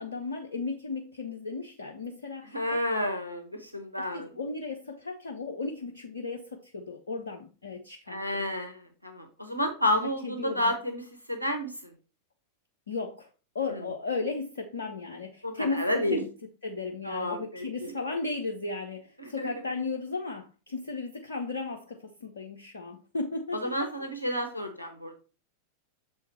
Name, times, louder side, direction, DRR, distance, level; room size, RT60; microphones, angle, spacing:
voice 1, 0.0-2.9 4.0-8.4 10.2-10.7 12.9-13.3 13.5-16.3 16.6-23.7, left 3 dB, 70° left, 3 dB, 0.7 m, -35 dB
voice 2, 2.5-4.3 8.1-11.9 13.7-13.8 15.4-16.2 17.0-17.9 19.2-19.5 23.5-25.1, left 1 dB, 90° right, 5 dB, 0.9 m, -31 dB
7.0 x 3.7 x 4.2 m, 0.34 s
figure-of-eight pair, 90°, 0 cm